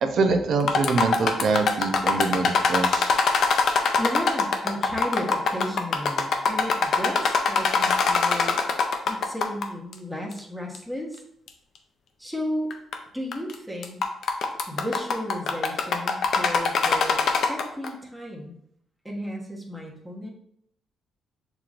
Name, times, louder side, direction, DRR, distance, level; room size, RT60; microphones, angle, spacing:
voice 1, 0.0-3.1, right 4 dB, 65° right, 6 dB, 0.6 m, -24 dB
sound 1, 0.6-9.6 9.9-10.0 10.7-10.8 11.5-11.6 12.7-13.0 13.3-13.5 13.8-17.9, left 5 dB, 65° left, 0.5 m, -23 dB
voice 2, 4.0-8.6 9.1-11.2 12.2-12.7 13.1-14.0 14.7-18.6 19.0-20.3, equal, 5° right, -2 dB, 1.1 m, -33 dB
6.8 x 3.0 x 2.5 m, 0.73 s
cardioid pair, 90°, 0 cm